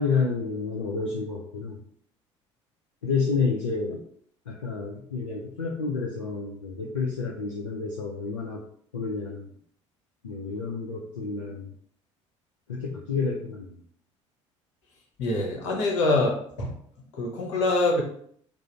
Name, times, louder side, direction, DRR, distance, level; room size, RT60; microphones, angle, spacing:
voice 1, 0.0-1.8 3.0-4.0 4.5-8.6 8.9-9.5 10.2-11.7 12.7-13.7, left 4 dB, 85° left, -2 dB, 0.5 m, -29 dB
voice 2, 15.2-16.7 17.1-18.0, left 2 dB, 70° left, 0 dB, 1.0 m, -25 dB
3.7 x 2.0 x 4.3 m, 0.63 s
figure-of-eight pair, 60°, 16 cm